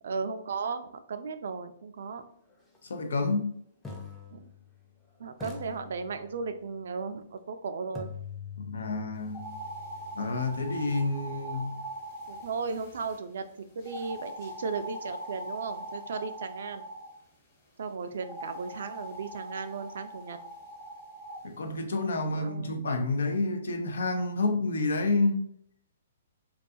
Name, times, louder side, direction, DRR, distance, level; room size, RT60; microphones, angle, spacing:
voice 1, 0.0-2.2 4.3-4.5 5.2-8.1 12.3-13.5 13.8-16.8 17.8-20.4 22.4-22.8, right 5 dB, 70° right, 0.3 m, -36 dB
sound 1, 2.7-2.9 3.8-5.0 5.4-6.6 7.9-11.9, left 5 dB, 5° left, 0.5 m, -45 dB
voice 2, 2.9-3.5 8.6-9.6 10.2-11.8 21.4-25.5, left 3 dB, 80° left, 0.5 m, -29 dB
sound 2, 9.3-13.2 13.8-17.1 18.2-21.4, right 1 dB, 25° left, 1.2 m, -42 dB
2.3 x 2.3 x 2.6 m
hypercardioid pair, 140°, 0 cm